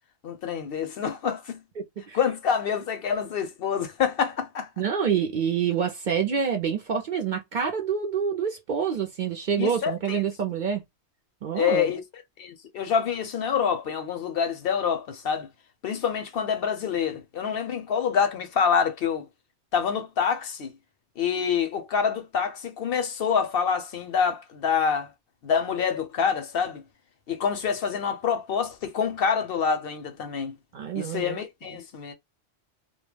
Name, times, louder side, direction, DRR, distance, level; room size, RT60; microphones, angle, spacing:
voice 1, 0.2-1.6 2.1-4.7 9.6-10.2 11.6-12.0 12.4-15.5 15.8-19.3 19.7-20.7 21.2-25.1 25.4-26.8 27.3-30.6 30.9-32.1, left 7 dB, 65° left, 0.7 m, -26 dB
voice 2, 1.8-2.2 4.8-10.8 11.4-11.9 30.7-31.4, right 7 dB, 55° right, 0.6 m, -27 dB
2.2 x 2.1 x 3.1 m
omnidirectional pair, 1.2 m